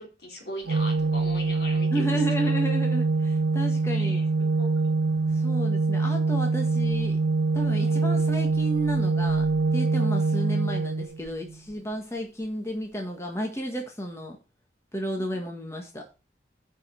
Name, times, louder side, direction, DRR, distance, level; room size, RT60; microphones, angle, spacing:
voice 1, 0.0-2.6 3.9-4.7 7.8-8.1, left 1 dB, 65° left, 3.9 m, -40 dB
Organ, 0.7-11.6, right 3 dB, 85° right, 0.4 m, -24 dB
voice 2, 1.9-4.2 5.3-7.2 7.5-9.5 9.7-14.4 14.9-16.0, equal, 15° left, 1.7 m, -32 dB
9.4 x 5.7 x 6.9 m
head